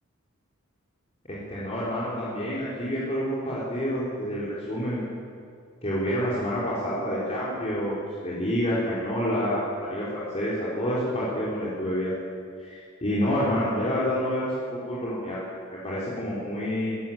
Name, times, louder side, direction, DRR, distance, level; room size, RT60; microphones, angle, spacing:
voice 1, 1.3-5.1 5.8-12.2 12.6-15.4 15.7-16.9, equal, 30° left, -8 dB, 4.0 m, -28 dB
21.0 x 15.5 x 8.9 m, 2.3 s
head